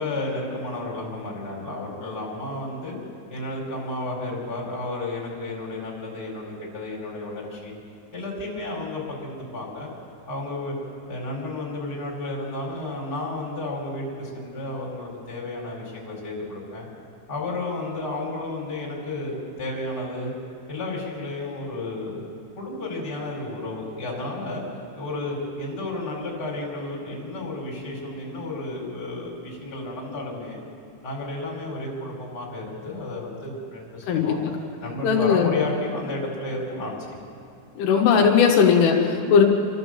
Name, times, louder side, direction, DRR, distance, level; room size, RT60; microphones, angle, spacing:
voice 1, 0.0-3.0 3.3-7.7 8.1-9.9 10.3-10.7 11.1-16.8 17.3-20.3 20.7-22.2 22.5-24.6 24.9-30.6 31.0-34.4 34.8-37.2, left 2 dB, 20° left, -3 dB, 5.0 m, -32 dB
voice 2, 34.1-34.5 35.0-35.5 37.8-39.4, left 6 dB, 85° left, 0 dB, 4.0 m, -18 dB
28.5 x 12.5 x 7.8 m, 2.4 s
omnidirectional pair, 5.5 m